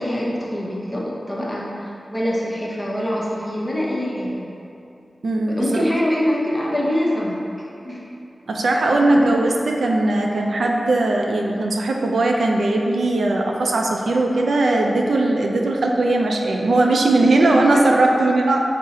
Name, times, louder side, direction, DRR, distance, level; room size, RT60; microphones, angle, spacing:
voice 1, 0.0-4.5 5.5-7.5 7.8-8.1 8.8-9.3 17.3-17.8, equal, 15° left, -5 dB, 0.7 m, -24 dB
voice 2, 5.2-5.8 8.5-18.6, right 2 dB, 85° right, 0 dB, 0.3 m, -19 dB
5.4 x 2.0 x 3.7 m, 2.7 s
wide cardioid pair, 105°, 0 cm